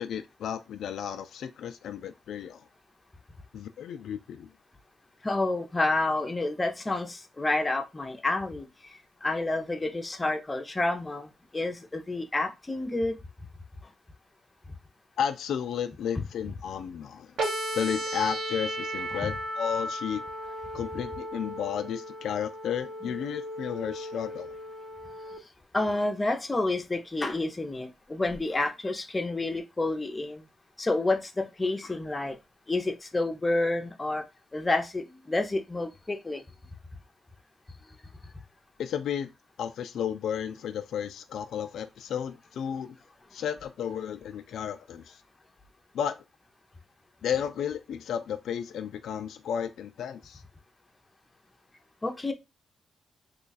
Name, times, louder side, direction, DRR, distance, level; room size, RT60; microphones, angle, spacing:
voice 1, 0.0-2.6 3.5-4.5 15.2-17.3 17.7-20.2 20.7-24.5 38.8-39.3 39.6-43.0 43.3-45.2 45.9-46.2 47.2-50.4, left 8 dB, 80° left, 0.3 m, -33 dB
voice 2, 5.2-13.2 19.1-19.3 25.7-30.5 30.8-32.4 32.7-34.2 34.5-36.4 52.0-52.3, left 2 dB, 20° left, 0.6 m, -29 dB
sound 1, 17.4-25.4, right 1 dB, 80° right, 1.0 m, -35 dB
3.0 x 2.3 x 4.0 m
cardioid pair, 95°, 0 cm